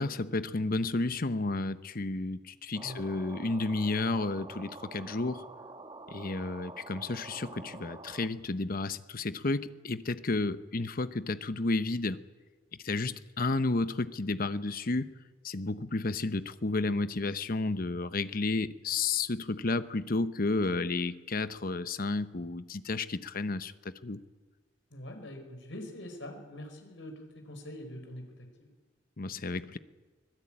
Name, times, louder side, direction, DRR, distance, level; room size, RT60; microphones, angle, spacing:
voice 1, 0.0-5.4 6.1-12.2 12.8-15.1 15.4-24.2 29.2-29.8, left 3 dB, 50° left, 12 dB, 0.9 m, -32 dB
sound 1, 2.7-8.3, right 3 dB, 25° right, 1.2 m, -47 dB
voice 2, 24.9-28.5, left 1 dB, 70° left, 5 dB, 4.8 m, -44 dB
24.5 x 18.5 x 8.8 m, 1.3 s
head